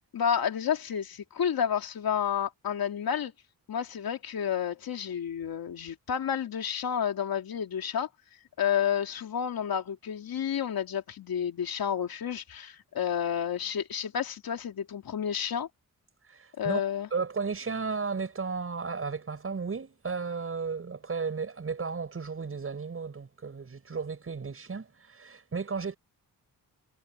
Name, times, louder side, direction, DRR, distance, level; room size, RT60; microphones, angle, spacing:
voice 1, 0.1-3.3 3.7-8.1 8.6-15.7 16.6-17.1, left 8 dB, 80° left, 2.9 m, -30 dB
voice 2, 16.3-16.8 17.1-26.0, right 5 dB, 40° right, 6.4 m, -34 dB
wide cardioid pair, 150°, 35 cm